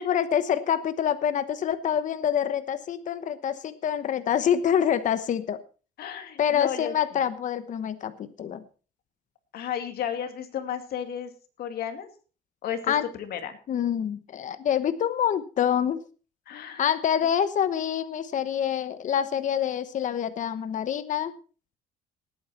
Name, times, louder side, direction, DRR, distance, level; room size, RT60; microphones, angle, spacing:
voice 1, 0.0-5.6 6.4-8.6 12.9-13.1 13.7-16.0 16.8-21.3, left 9 dB, 50° left, 12 dB, 1.0 m, -26 dB
voice 2, 6.0-7.2 9.5-11.3 11.6-12.1 12.6-13.6 16.5-16.9, left 9 dB, 65° left, 7 dB, 2.5 m, -33 dB
19.0 x 9.0 x 4.3 m, 0.37 s
cardioid pair, 110°, 17 cm